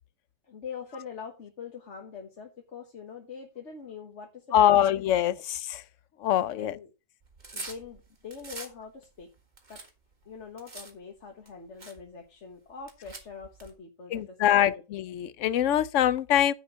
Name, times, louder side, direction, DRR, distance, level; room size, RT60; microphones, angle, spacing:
voice 1, 0.4-4.8 6.5-6.9 7.5-9.3 9.7-9.8 10.2-14.7, left 6 dB, 45° left, 1.5 m, -43 dB
voice 2, 4.5-5.8 6.2-6.8 14.1-16.5, left 11 dB, 65° left, 0.8 m, -24 dB
sound 1, 7.2-8.7 9.2-10.9 11.5-11.6 11.8-12.0 12.8-13.7, right 3 dB, 25° right, 1.7 m, -43 dB
9.7 x 4.4 x 6.7 m
omnidirectional pair, 1.8 m